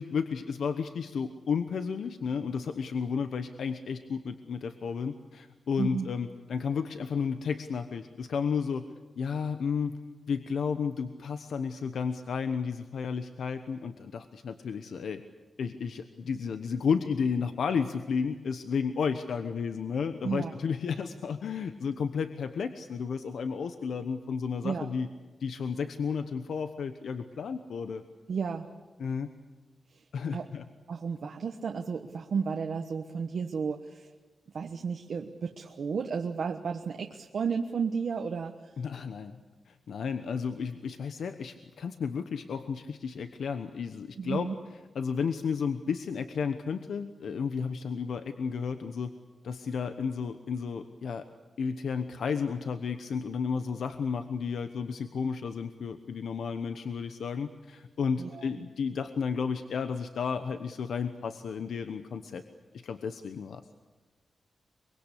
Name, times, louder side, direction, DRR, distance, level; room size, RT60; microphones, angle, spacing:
voice 1, 0.0-8.9 9.2-9.9 10.3-15.2 15.6-25.1 25.4-28.0 29.0-29.3 30.1-30.6 38.8-39.4 39.7-44.5 44.9-49.1 49.4-51.2 51.6-62.4 62.8-63.6, left 6 dB, 85° left, 9 dB, 1.1 m, -32 dB
voice 2, 5.8-6.1 20.2-20.5 24.6-24.9 28.3-28.7 30.3-30.4 30.9-34.1 34.5-38.5 44.2-44.5 58.2-58.5, right 5 dB, 60° right, 4 dB, 1.2 m, -32 dB
24.0 x 23.0 x 8.4 m, 1.2 s
wide cardioid pair, 175°, 0 cm